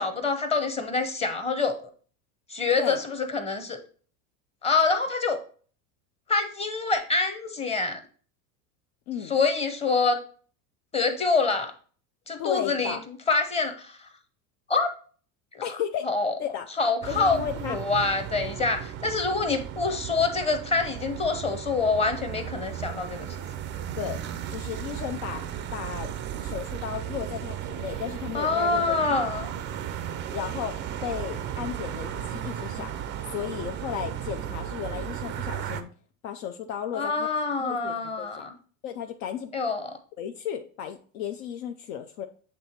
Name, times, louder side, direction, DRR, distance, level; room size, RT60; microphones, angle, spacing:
voice 1, 0.0-1.9 2.5-3.8 4.6-5.4 6.3-8.0 9.2-10.2 10.9-11.7 12.3-14.1 14.7-14.9 15.5-15.8 16.0-16.3 16.8-23.3 28.3-29.6 36.9-38.5 39.5-40.0, left 4 dB, 15° left, 7 dB, 0.8 m, -26 dB
voice 2, 12.4-13.0 15.6-16.1 16.4-16.7 17.1-17.8 24.0-24.2 24.5-25.4 25.7-26.1 26.4-29.2 30.3-32.9 33.3-35.9 36.2-37.3 37.6-38.5 38.8-39.5 40.2-42.3, left 9 dB, 70° left, 5 dB, 0.8 m, -34 dB
sound 1, 17.0-35.8, right 10 dB, 25° right, 0.4 m, -35 dB
7.6 x 3.4 x 4.3 m, 0.42 s
supercardioid pair, 130°, 45 cm